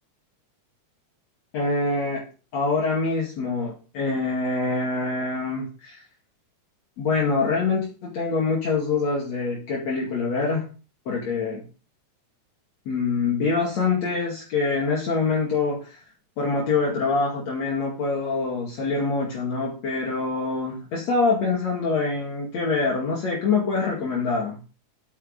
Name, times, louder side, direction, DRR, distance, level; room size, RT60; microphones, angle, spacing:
voice 1, 1.5-2.3 2.5-6.0 7.0-10.7 11.1-11.6 12.9-16.0 16.4-24.6, left 4 dB, 60° left, -3 dB, 3.5 m, -25 dB
9.1 x 6.5 x 6.6 m, 0.34 s
omnidirectional pair, 3.5 m